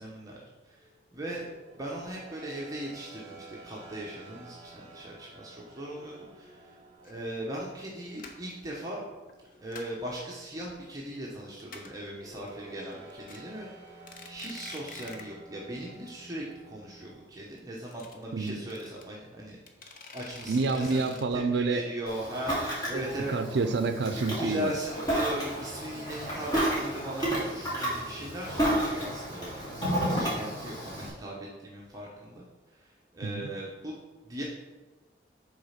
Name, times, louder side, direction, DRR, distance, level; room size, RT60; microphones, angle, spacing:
voice 1, 0.0-1.5 1.8-6.8 7.0-9.0 9.6-13.7 14.2-19.6 20.1-22.5 22.9-23.4 24.4-34.0 34.2-34.4, right 1 dB, 20° right, -4 dB, 0.9 m, -39 dB
sound 1, 0.8-17.1, right 2 dB, 40° right, 1.5 m, -52 dB
sound 2, 7.0-7.1 7.6-7.8 8.2-8.6 9.3-10.1 10.4-11.0 11.3-11.4 11.6-12.1 12.5-12.6 12.9-13.4 13.9-15.4 15.6-15.7 16.1-16.2 16.4-16.5 17.6-19.0 19.7-21.2, left 4 dB, 50° left, 0.8 m, -47 dB
voice 2, 20.5-21.8 22.9-23.0 23.3-24.7 33.2-33.4, right 3 dB, 65° right, 9 dB, 0.5 m, -28 dB
Ocean, 22.1-31.1, right 1 dB, 20° left, 2.5 m, -31 dB
6.4 x 4.1 x 5.7 m, 1.2 s
head